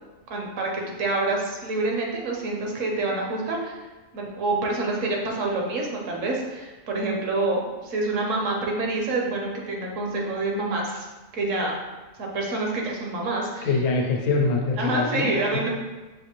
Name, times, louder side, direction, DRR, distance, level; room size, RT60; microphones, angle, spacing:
voice 1, 0.3-3.8 4.1-11.1 11.3-11.8 12.2-13.7 14.8-15.7, right 2 dB, 65° right, 0 dB, 1.0 m, -27 dB
voice 2, 13.6-15.7, left 3 dB, 85° left, 1 dB, 1.2 m, -24 dB
5.6 x 2.5 x 2.9 m, 1.2 s
omnidirectional pair, 1.5 m